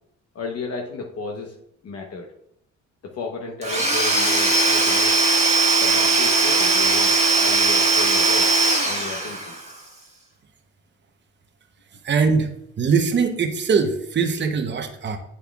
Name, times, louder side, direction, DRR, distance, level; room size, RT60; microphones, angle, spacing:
voice 1, 0.3-1.5 1.8-2.3 3.0-5.1 5.8-8.6 8.8-9.6, left 4 dB, 55° left, 1 dB, 0.9 m, -33 dB
Domestic sounds home sounds / Tools, 3.6-9.7, right 3 dB, 20° right, 1.5 m, -19 dB
voice 2, 12.0-12.5 12.8-15.2, right 5 dB, 35° right, 6 dB, 0.9 m, -21 dB
8.4 x 7.6 x 2.4 m, 0.74 s
cardioid pair, 90°, 30 cm